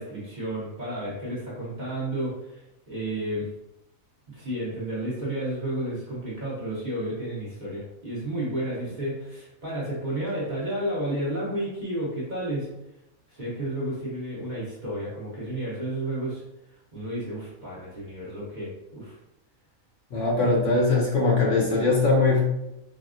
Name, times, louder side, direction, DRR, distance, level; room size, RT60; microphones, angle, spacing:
voice 1, 0.0-3.5 4.3-12.7 13.3-16.4 16.7-19.2, right 1 dB, 35° right, -8 dB, 0.9 m, -32 dB
voice 2, 20.1-22.4, left 3 dB, 65° left, -2 dB, 0.9 m, -21 dB
4.1 x 2.0 x 2.4 m, 0.89 s
omnidirectional pair, 1.5 m